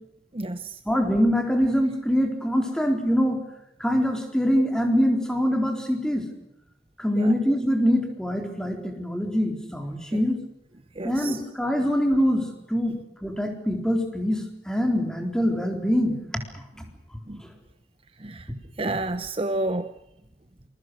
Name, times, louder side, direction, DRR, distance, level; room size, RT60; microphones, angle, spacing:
voice 1, 0.3-0.8 7.1-7.3 10.1-10.2 11.0-11.4 17.3-17.4 18.2-18.5 18.8-19.9, right 2 dB, 30° right, 11 dB, 0.8 m, -30 dB
voice 2, 0.9-3.4 3.8-6.2 7.0-10.4 11.0-12.9 13.2-16.1, equal, 5° left, 4 dB, 4.1 m, -24 dB
27.0 x 22.5 x 6.4 m, 0.80 s
head